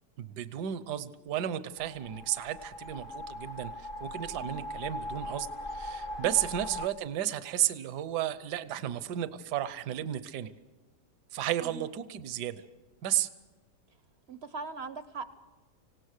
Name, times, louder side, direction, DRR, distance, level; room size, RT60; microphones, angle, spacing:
voice 1, 0.2-10.5 11.3-12.6 13.0-13.3, right 11 dB, 75° right, 14 dB, 1.4 m, -33 dB
sound 1, 1.8-6.9, left 1 dB, 40° left, 0.8 m, -40 dB
voice 2, 4.4-4.7 6.2-6.4 11.6-11.9 14.3-15.3, right 4 dB, 50° right, 13 dB, 0.8 m, -41 dB
26.0 x 17.5 x 6.6 m, 1.3 s
omnidirectional pair, 1.8 m